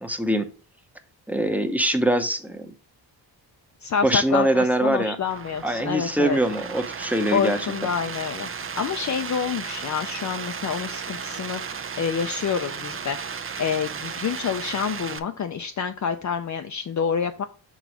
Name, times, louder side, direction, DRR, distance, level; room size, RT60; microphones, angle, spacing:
voice 1, 0.0-0.5 1.3-2.7 4.0-5.2 5.6-7.6, right 1 dB, 5° right, 7 dB, 0.8 m, -23 dB
voice 2, 3.8-6.4 7.3-13.2 13.6-17.4, left 7 dB, 45° left, 6 dB, 0.6 m, -27 dB
sound 1, 5.2-15.2, right 6 dB, 30° right, 0.6 m, -34 dB
6.2 x 4.0 x 4.7 m, 0.37 s
wide cardioid pair, 120°, 43 cm